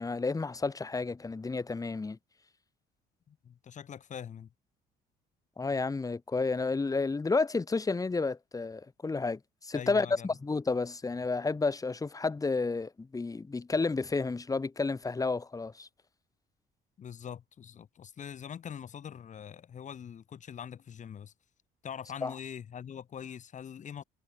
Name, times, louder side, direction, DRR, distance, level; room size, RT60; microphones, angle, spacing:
voice 1, 0.0-2.2 5.6-15.9 22.2-22.3, left 3 dB, 20° left, 5.2 m, -31 dB
voice 2, 3.3-4.5 9.7-10.4 17.0-21.3 21.8-24.0, left 8 dB, 45° left, 5.2 m, -43 dB
cardioid pair, 110°, 17 cm